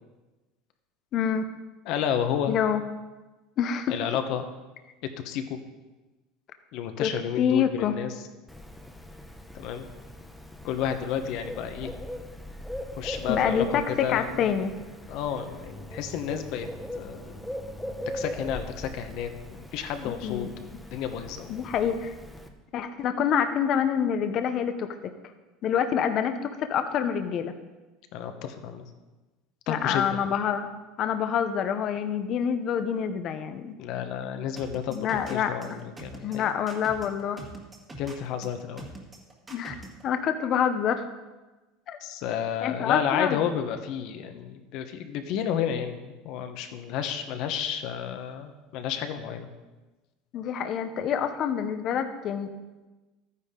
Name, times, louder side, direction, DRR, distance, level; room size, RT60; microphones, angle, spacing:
voice 1, 1.1-1.5 2.5-2.8 3.6-3.9 7.0-7.1 7.4-8.0 13.3-14.8 20.0-20.5 21.5-22.1 22.7-25.1 25.6-27.5 29.7-30.7 31.0-33.8 34.9-35.5 36.2-37.4 39.5-39.7 40.0-41.0 41.9-42.0 42.6-43.4 50.3-52.5, left 8 dB, 40° left, 8 dB, 0.7 m, -27 dB
voice 2, 1.9-2.6 3.9-4.5 5.2-5.6 6.7-8.1 9.5-9.9 10.6-11.9 12.9-14.5 15.1-16.7 17.0-17.4 18.1-21.6 28.1-28.9 29.7-30.2 33.8-36.5 38.0-38.9 42.0-49.5, left 8 dB, 55° left, 7 dB, 1.1 m, -31 dB
Bird, 8.5-22.5, left 1 dB, 5° left, 0.8 m, -40 dB
sound 1, 34.6-40.0, right 1 dB, 15° right, 1.6 m, -43 dB
13.0 x 9.8 x 3.8 m, 1.2 s
cardioid pair, 150°, 0 cm